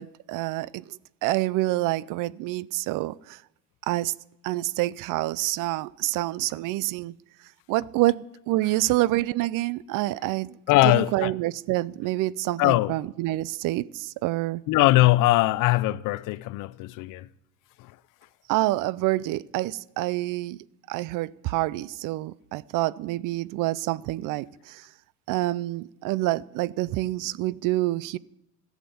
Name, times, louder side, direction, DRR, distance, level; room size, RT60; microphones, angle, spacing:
voice 1, 0.0-3.4 3.9-4.1 4.4-7.1 7.7-10.6 10.8-14.6 18.5-20.6 20.9-24.9 25.3-28.2, right 17 dB, 70° right, 0.5 m, -27 dB
voice 2, 10.7-11.3 12.6-12.9 14.7-17.3 17.8-17.9, left 18 dB, 65° left, 0.5 m, -21 dB
13.5 x 7.3 x 6.9 m
cardioid pair, 135°, 34 cm